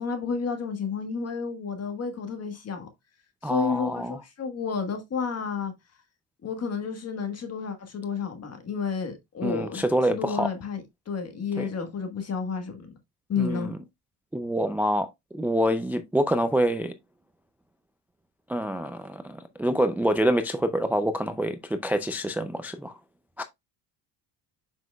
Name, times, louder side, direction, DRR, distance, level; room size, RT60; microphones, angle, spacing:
voice 1, 0.0-2.9 3.4-5.7 6.4-12.9 13.3-13.7, left 5 dB, 35° left, 1.4 m, -31 dB
voice 2, 3.4-4.2 9.4-10.5 11.6-11.7 13.4-13.8 14.3-15.1 15.3-16.9 18.5-22.9 23.4-23.5, equal, 5° right, 0.3 m, -26 dB
7.1 x 5.9 x 2.2 m
cardioid pair, 135°, 43 cm